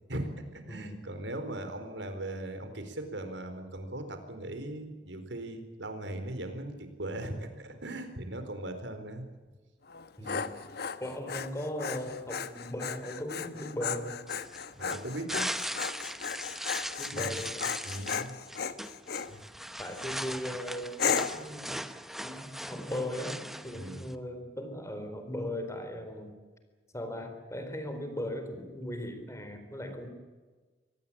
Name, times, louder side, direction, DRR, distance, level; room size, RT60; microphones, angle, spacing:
voice 1, 0.1-9.2 10.2-10.3 14.8-15.5 17.1-17.4 17.8-18.3 19.3-19.4 23.7-24.0, right 1 dB, 90° right, 8 dB, 4.3 m, -39 dB
voice 2, 0.7-1.0 10.2-10.7 11.0-14.2 17.0-17.9 19.8-21.8 22.2-26.3 26.9-30.1, left 1 dB, 15° left, 7 dB, 4.2 m, -38 dB
Dog, 9.9-19.3 19.9-20.3 21.0-21.5, left 6 dB, 60° left, 1.3 m, -35 dB
sound 1, 14.3-24.1, equal, ahead, 1.0 m, -39 dB
25.0 x 18.5 x 8.8 m, 1.3 s
head